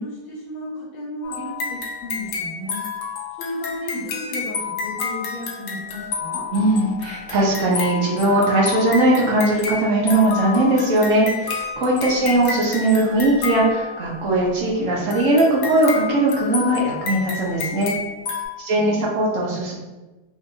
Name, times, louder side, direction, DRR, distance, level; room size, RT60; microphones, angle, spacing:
voice 1, 0.0-2.8 3.4-6.4 12.1-12.4 18.7-19.1, left 1 dB, 50° left, -7 dB, 1.6 m, -34 dB
sound 1, 1.2-14.3 15.1-18.4, left 5 dB, 70° left, 0.8 m, -30 dB
voice 2, 6.5-17.9 18.6-19.7, right 1 dB, 55° right, -4 dB, 0.9 m, -19 dB
4.1 x 2.8 x 2.5 m, 1.2 s
omnidirectional pair, 2.0 m